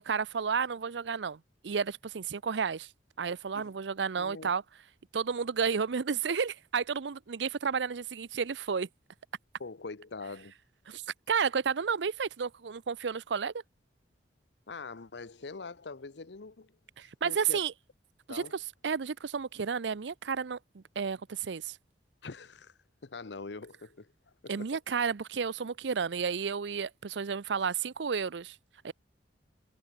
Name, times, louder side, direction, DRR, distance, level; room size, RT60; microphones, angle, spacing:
voice 1, 0.0-2.9 3.2-4.6 5.1-8.9 10.9-11.0 11.3-13.5 17.0-17.7 18.3-18.4 18.8-21.8 24.5-28.6 28.8-28.9, right 6 dB, 80° right, 0.6 m, -32 dB
voice 2, 4.2-4.5 9.6-10.5 14.7-16.7 17.2-17.6 18.3-18.6 22.2-24.1 24.4-24.7, left 4 dB, 75° left, 0.8 m, -43 dB
head